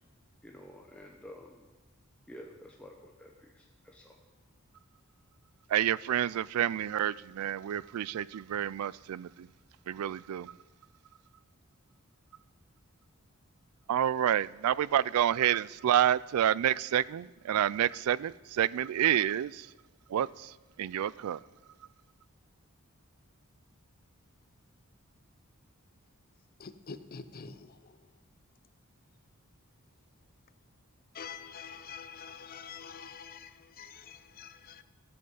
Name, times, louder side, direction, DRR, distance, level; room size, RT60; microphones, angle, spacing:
voice 1, 0.4-1.7 2.3-4.2, equal, 5° left, 0.8 m, -50 dB
voice 2, 5.7-9.5 9.9-10.5 13.9-19.7 20.1-21.4, right 10 dB, 85° right, 0.3 m, -29 dB
voice 3, 26.6-28.1 31.1-34.8, left 6 dB, 45° left, 0.7 m, -46 dB
14.5 x 7.8 x 5.5 m
head